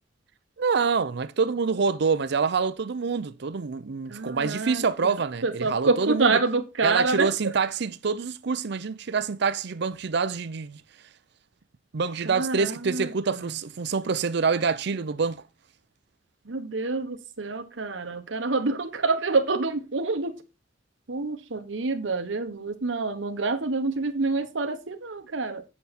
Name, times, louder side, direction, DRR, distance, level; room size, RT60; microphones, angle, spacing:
voice 1, 0.6-6.4 6.8-10.8 11.9-15.4, right 5 dB, 65° right, 0.5 m, -26 dB
voice 2, 4.1-5.1 5.4-7.6 12.2-13.5 16.4-20.4 21.1-25.6, right 3 dB, 80° right, 1.1 m, -27 dB
8.5 x 6.9 x 4.2 m
head